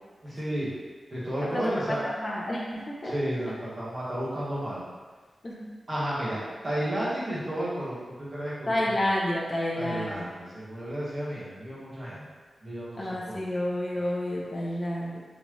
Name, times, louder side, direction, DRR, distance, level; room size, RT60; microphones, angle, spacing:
voice 1, 0.2-0.7 1.1-2.0 3.0-4.8 5.9-8.7 9.7-12.2 12.6-13.4 13.9-14.1, right 1 dB, 25° right, -10 dB, 1.4 m, -32 dB
voice 2, 1.4-3.1 5.4-5.7 8.7-10.3 13.0-15.2, left 1 dB, 25° left, -5 dB, 0.7 m, -30 dB
4.0 x 3.3 x 3.1 m, 1.4 s
wide cardioid pair, 165°, 0 cm